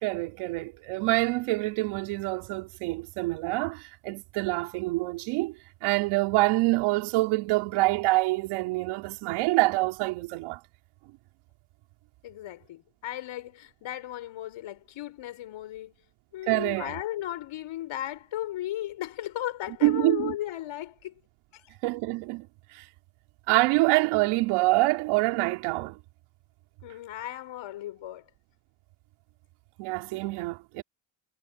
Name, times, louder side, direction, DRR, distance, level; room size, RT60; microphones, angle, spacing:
voice 1, 0.0-5.5 5.8-10.6 16.5-17.0 19.8-20.4 21.8-22.8 23.5-26.0 29.8-30.8, right 21 dB, 85° right, 3.8 m, -26 dB
voice 2, 12.2-16.0 16.3-21.1 21.5-21.6 26.8-28.3, left 13 dB, 70° left, 6.6 m, -36 dB
supercardioid pair, 70°, 49 cm